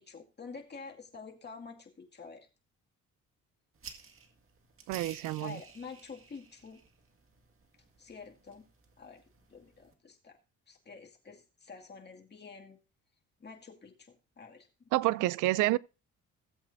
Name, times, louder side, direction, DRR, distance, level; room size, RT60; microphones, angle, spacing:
voice 1, 0.0-2.5 5.4-6.8 8.0-8.7 9.0-9.2 9.5-10.4 10.7-12.8 13.4-14.7 15.6-15.8, left 5 dB, 35° left, 2.2 m, -48 dB
sound 1, 3.8-9.9, right 5 dB, 45° right, 2.0 m, -53 dB
voice 2, 4.9-5.6 14.9-15.8, right 18 dB, 90° right, 0.5 m, -28 dB
17.0 x 7.8 x 2.7 m
cardioid pair, 90°, 30 cm